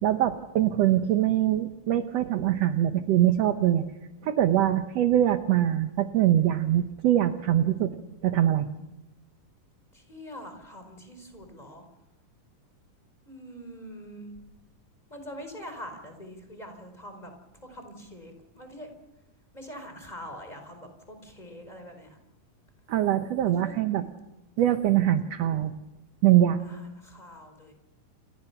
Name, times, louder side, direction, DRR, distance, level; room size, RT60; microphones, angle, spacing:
voice 1, 0.0-3.8 4.2-8.0 8.2-8.7 22.9-24.0 24.6-25.7 26.2-26.6, right 12 dB, 70° right, 9 dB, 1.6 m, -23 dB
voice 2, 9.9-11.9 13.2-14.3 15.1-17.3 17.6-18.9 19.5-22.2 23.4-23.8 26.6-27.7, equal, 10° left, 5 dB, 4.5 m, -44 dB
29.0 x 25.0 x 5.9 m, 0.98 s
omnidirectional pair, 4.0 m